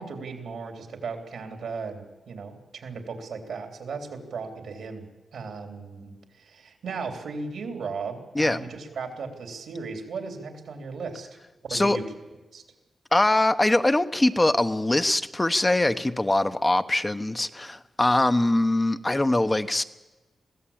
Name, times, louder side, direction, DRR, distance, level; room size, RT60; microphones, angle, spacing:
voice 1, 0.0-11.3 11.7-12.0 12.5-12.6, right 4 dB, 85° right, 3.4 m, -36 dB
voice 2, 8.3-8.7 11.7-12.0 13.1-19.8, left 1 dB, 20° left, 0.9 m, -22 dB
22.0 x 15.5 x 8.8 m
cardioid pair, 65°, 0 cm